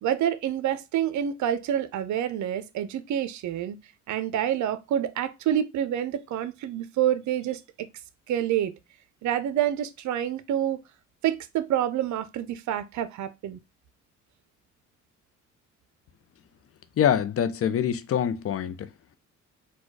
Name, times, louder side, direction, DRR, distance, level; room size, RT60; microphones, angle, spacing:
voice 1, 0.0-3.8 4.1-7.9 8.3-8.7 9.2-10.8 11.2-13.6, right 10 dB, 70° right, 0.6 m, -27 dB
voice 2, 17.0-18.9, left 9 dB, 50° left, 0.6 m, -25 dB
4.3 x 2.3 x 4.6 m
cardioid pair, 90°, 30 cm